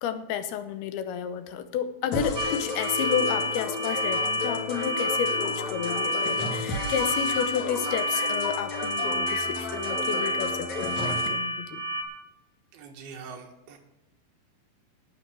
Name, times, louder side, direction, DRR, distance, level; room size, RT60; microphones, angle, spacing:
voice 1, 0.0-11.8, left 8 dB, 90° left, 8 dB, 2.9 m, -31 dB
sound 1, 2.1-11.3, left 4 dB, 55° left, 2.6 m, -33 dB
sound 2, 2.4-12.0, equal, 40° right, 1.8 m, -30 dB
voice 2, 12.7-13.8, right 5 dB, 85° right, 3 dB, 3.5 m, -43 dB
18.5 x 6.2 x 6.1 m, 0.94 s
omnidirectional pair, 4.4 m